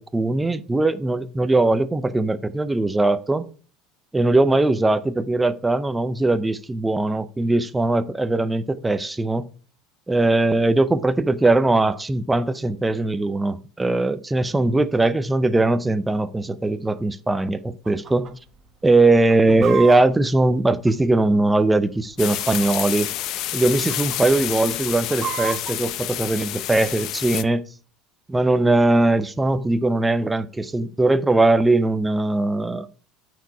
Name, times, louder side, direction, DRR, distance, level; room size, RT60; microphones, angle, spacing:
voice 1, 0.0-3.4 4.1-9.5 10.1-18.4 18.8-23.1 23.5-27.6 28.3-32.9, right 2 dB, 10° right, 0.5 m, -20 dB
Chicken rooster, 17.9-18.3 18.6-18.7 19.1-21.4 22.1-22.9 23.2-23.4 23.7-24.2 24.6-25.8, right 8 dB, 40° right, 1.0 m, -32 dB
sound 1, 22.2-27.4, left 14 dB, 55° left, 0.5 m, -29 dB
9.1 x 4.8 x 4.5 m
supercardioid pair, 115°, 0 cm